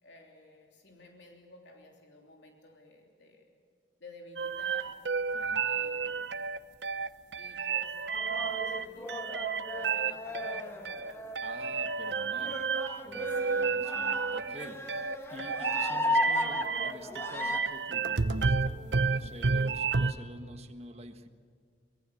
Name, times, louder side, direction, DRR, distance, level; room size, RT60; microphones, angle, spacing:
voice 1, 0.0-3.4 4.0-5.2 5.6-6.5 7.4-9.2 9.7-10.7 13.3-13.5 14.7-14.8, left 2 dB, 85° left, 1 dB, 3.1 m, -54 dB
sound 1, 4.4-20.1, right 5 dB, 75° right, 0.9 m, -31 dB
voice 2, 5.3-5.7 11.4-12.7 13.0-14.8 15.3-21.3, right 1 dB, 35° right, 6 dB, 1.6 m, -48 dB
sound 2, 8.1-17.6, left 1 dB, 15° left, 1.6 m, -36 dB
24.5 x 21.5 x 7.3 m, 2.1 s
head